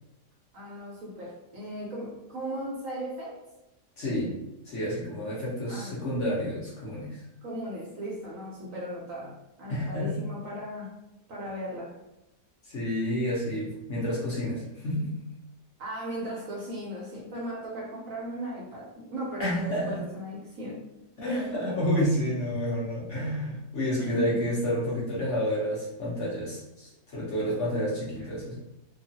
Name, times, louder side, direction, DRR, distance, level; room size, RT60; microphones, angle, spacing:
voice 1, 0.5-3.4 5.7-6.0 7.4-10.9 11.3-12.0 15.8-20.9 21.3-21.7 24.0-24.4, right 1 dB, 60° right, -4 dB, 1.0 m, -37 dB
voice 2, 4.0-4.3 4.6-7.2 9.7-10.2 12.7-15.1 19.4-20.0 21.2-28.5, equal, 50° left, -7 dB, 1.0 m, -29 dB
2.9 x 2.4 x 2.7 m, 0.94 s
omnidirectional pair, 1.8 m